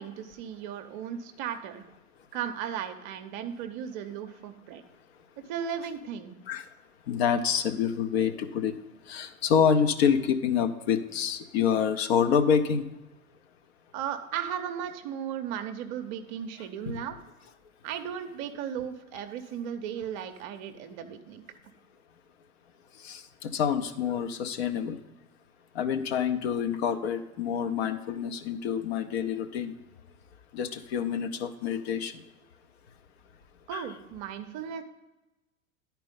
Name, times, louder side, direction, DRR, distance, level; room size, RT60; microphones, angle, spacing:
voice 1, 0.0-1.8 2.3-4.8 5.5-6.4 13.9-17.2 17.8-21.4 33.7-34.8, right 8 dB, 35° right, 8 dB, 0.7 m, -36 dB
voice 2, 7.1-8.7 9.1-12.8 16.9-17.0 23.0-25.0 25.7-29.7 30.5-32.1 33.7-33.9, left 7 dB, 45° left, 8 dB, 0.7 m, -27 dB
11.0 x 4.5 x 5.2 m, 1.1 s
figure-of-eight pair, 90°, 43 cm